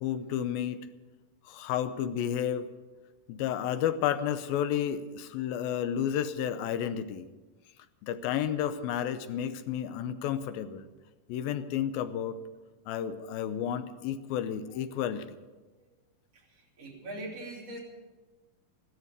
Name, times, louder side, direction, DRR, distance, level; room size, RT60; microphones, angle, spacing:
voice 1, 0.0-0.9 1.5-2.7 3.3-7.3 8.0-10.9 11.3-12.4 12.9-15.4, left 9 dB, 80° left, 12 dB, 2.5 m, -31 dB
voice 2, 16.3-17.8, right 1 dB, 45° right, -2 dB, 4.1 m, -42 dB
14.5 x 13.0 x 6.7 m, 1.2 s
omnidirectional pair, 4.2 m